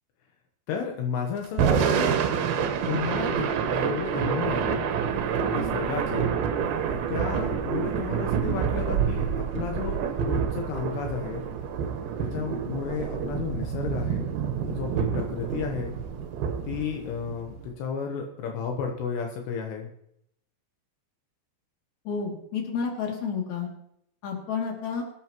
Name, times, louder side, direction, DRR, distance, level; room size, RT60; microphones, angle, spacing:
voice 1, 0.7-2.1 2.9-4.9 5.5-6.3 7.1-9.3 9.5-11.4 12.2-14.3 14.7-15.9 16.6-19.9, left 7 dB, 75° left, 2 dB, 3.2 m, -32 dB
Thunder / Rain, 1.4-17.7, right 7 dB, 70° right, 2.8 m, -28 dB
Wind, 2.7-17.6, right 7 dB, 45° right, 2.2 m, -38 dB
voice 2, 22.0-23.7 24.2-25.0, left 6 dB, 45° left, -1 dB, 3.4 m, -30 dB
24.0 x 9.4 x 3.0 m, 0.75 s
omnidirectional pair, 5.0 m